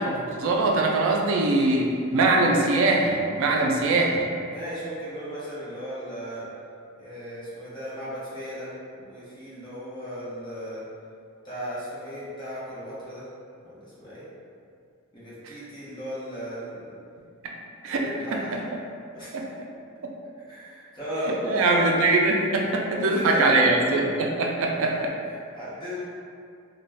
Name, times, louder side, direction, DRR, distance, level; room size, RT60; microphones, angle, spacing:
voice 1, 0.0-4.3 15.4-15.5 17.4-17.5 17.8-18.0 18.3-18.4 19.3-19.5 20.0-20.1 21.4-25.1, right 2 dB, 65° right, 0 dB, 0.3 m, -22 dB
voice 2, 4.5-6.5 7.0-10.9 11.4-13.3 13.6-14.3 15.1-16.9 17.8-18.6 19.1-19.4 20.4-21.9 22.9-23.7 24.8-25.0 25.3-26.0, equal, 20° left, -10 dB, 0.8 m, -35 dB
2.3 x 2.2 x 3.3 m, 2.4 s
head